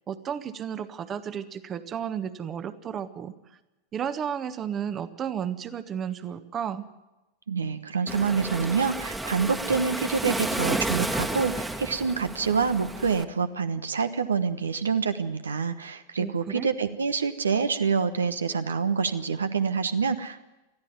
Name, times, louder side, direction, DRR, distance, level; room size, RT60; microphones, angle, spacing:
voice 1, 0.1-3.3 3.9-6.8 16.2-16.7, right 8 dB, 25° right, 12 dB, 1.2 m, -33 dB
voice 2, 7.5-20.4, right 5 dB, 70° right, 10 dB, 1.1 m, -27 dB
Waves surf, 8.1-13.2, right 1 dB, 5° right, 1.5 m, -31 dB
20.5 x 14.0 x 9.4 m, 1.0 s
figure-of-eight pair, 90°, 0 cm